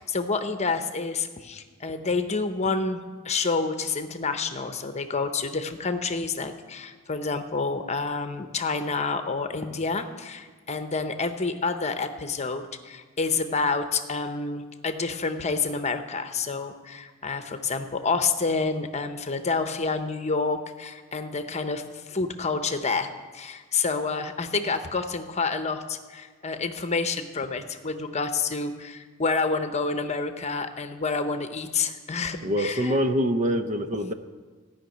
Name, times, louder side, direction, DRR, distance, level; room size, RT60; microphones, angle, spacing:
voice 1, 0.0-33.0, left 4 dB, 35° left, 8 dB, 0.8 m, -28 dB
voice 2, 32.4-34.1, equal, 35° right, 9 dB, 0.7 m, -25 dB
15.5 x 5.9 x 9.1 m, 1.4 s
head